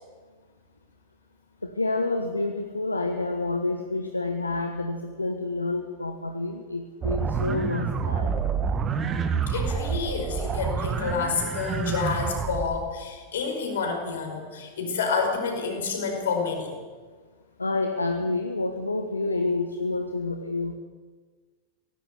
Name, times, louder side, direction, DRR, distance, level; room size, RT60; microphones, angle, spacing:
voice 1, 1.6-8.3 17.6-20.7, left 2 dB, 80° left, 6 dB, 1.3 m, -28 dB
sound 1, 7.0-12.8, right 6 dB, 25° right, 1.7 m, -28 dB
voice 2, 9.5-16.7, left 5 dB, 60° left, 3 dB, 5.0 m, -29 dB
17.5 x 15.5 x 9.6 m, 1.5 s
figure-of-eight pair, 90°, 0 cm